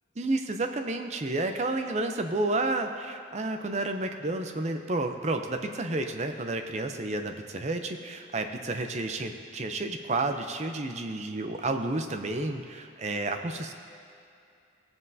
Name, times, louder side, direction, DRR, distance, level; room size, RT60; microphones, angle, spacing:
voice 1, 0.2-13.7, right 2 dB, 35° right, 6 dB, 0.5 m, -31 dB
17.0 x 7.5 x 2.7 m, 2.6 s
head